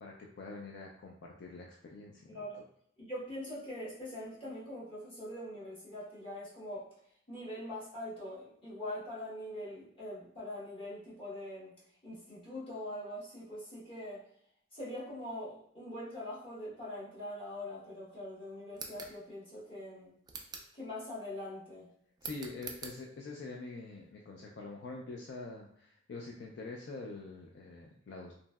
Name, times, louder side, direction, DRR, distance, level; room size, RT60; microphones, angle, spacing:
voice 1, 0.0-2.6 22.2-28.3, left 3 dB, 60° left, -1 dB, 0.3 m, -45 dB
voice 2, 2.3-2.6 3.0-6.9 7.3-11.7 12.0-14.2 14.7-20.1 20.7-21.9, left 1 dB, 30° left, -9 dB, 1.2 m, -43 dB
sound 1, 18.7-19.2 20.2-20.7 22.2-23.0, right 5 dB, 20° right, 0.3 m, -45 dB
3.0 x 2.6 x 2.3 m, 0.67 s
head